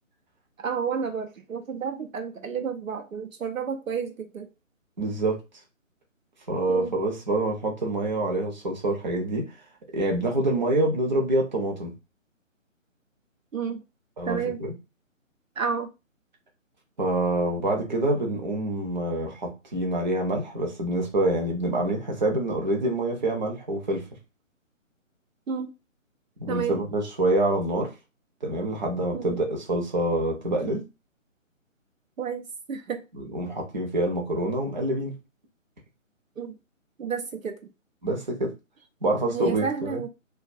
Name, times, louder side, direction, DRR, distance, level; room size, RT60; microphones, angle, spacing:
voice 1, 0.6-4.5 6.7-6.9 13.5-13.8 14.3-14.6 15.6-15.9 25.5-25.7 26.5-26.8 29.1-29.4 32.2-33.0 36.4-36.5 37.0-37.6 39.3-40.1, right 6 dB, 80° right, 0.6 m, -30 dB
voice 2, 5.0-5.4 6.5-9.5 9.9-11.9 14.2-14.7 17.0-24.0 26.4-27.9 28.4-30.8 33.1-35.2 38.0-38.5 39.0-40.0, right 1 dB, 35° right, 0.6 m, -26 dB
2.4 x 2.2 x 2.5 m
figure-of-eight pair, 150°, 39 cm